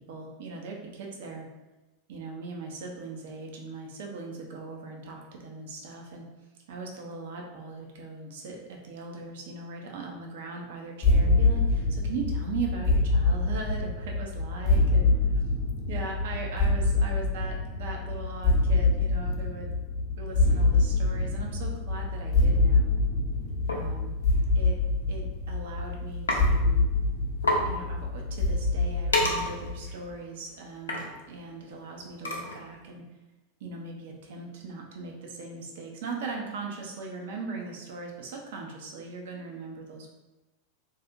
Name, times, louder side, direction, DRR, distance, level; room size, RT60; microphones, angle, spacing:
voice 1, 0.1-1.5 2.1-6.3 6.7-15.1 15.9-19.7 20.2-22.9 23.7-24.1 24.6-24.7 25.1-26.8 27.6-33.0 33.6-40.1, right 4 dB, 60° right, 0 dB, 0.4 m, -39 dB
sound 1, 11.0-29.9, left 2 dB, 30° left, 0.6 m, -25 dB
sound 2, 23.7-23.9 24.9-25.1 25.4-25.8 26.3-26.4 26.8-26.9 27.1-27.2 27.4-27.6 28.1-32.8, left 1 dB, 75° left, 0.4 m, -30 dB
2.5 x 2.0 x 2.5 m, 1.1 s
figure-of-eight pair, 85°, 0 cm